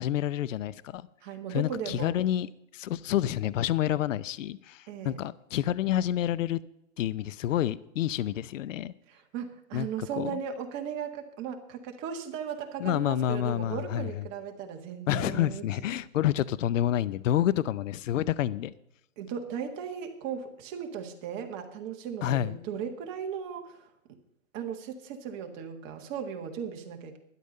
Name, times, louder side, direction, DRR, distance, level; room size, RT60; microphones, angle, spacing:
voice 1, 0.0-1.1 1.5-6.6 7.0-8.9 9.7-10.4 12.8-14.1 15.1-18.7 22.2-22.6, left 12 dB, 65° left, 18 dB, 0.7 m, -28 dB
voice 2, 1.2-2.2 4.9-5.2 9.1-15.6 19.2-23.9 24.5-27.2, right 7 dB, 30° right, 4 dB, 1.7 m, -37 dB
12.5 x 10.5 x 5.4 m, 0.82 s
hypercardioid pair, 145°, 41 cm